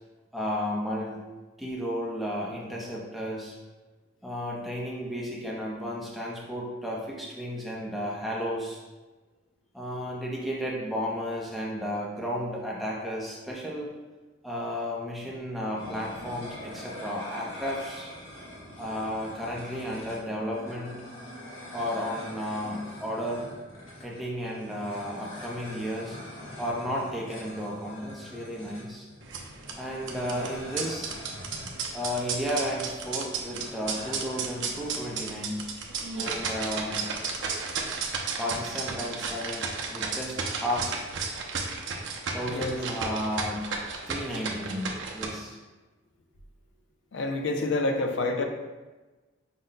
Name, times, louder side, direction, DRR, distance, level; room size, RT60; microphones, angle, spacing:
voice 1, 0.3-1.2 1.6-3.5 4.2-8.8 9.7-13.9 14.4-18.1 18.8-21.0 21.7-23.5 24.0-26.2 26.6-29.1 29.8-31.1 31.9-35.7 36.1-37.0 38.4-41.0 42.3-43.7 44.1-45.6, equal, ahead, -4 dB, 0.6 m, -33 dB
sound 1, 15.7-35.2, left 1 dB, 80° left, 1.3 m, -44 dB
sound 2, 29.2-45.3, right 4 dB, 60° right, 0.6 m, -34 dB
voice 2, 42.5-42.8 47.1-48.4, left 2 dB, 60° left, 4 dB, 0.5 m, -28 dB
5.3 x 2.1 x 3.9 m, 1.2 s
head